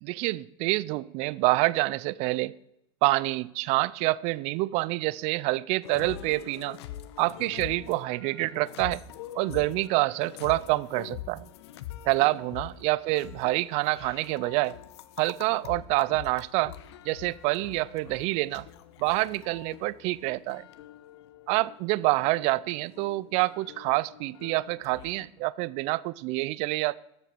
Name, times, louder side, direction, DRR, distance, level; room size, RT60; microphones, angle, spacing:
voice 1, 0.0-2.5 3.0-6.8 7.2-9.0 9.3-11.5 12.1-14.7 15.2-16.7 17.0-18.7 19.0-20.7 21.5-27.0, right 20 dB, 55° right, 0.4 m, -27 dB
sound 1, 5.8-25.3, left 12 dB, 90° left, 1.0 m, -45 dB
13.0 x 7.7 x 6.7 m
supercardioid pair, 140°, 14 cm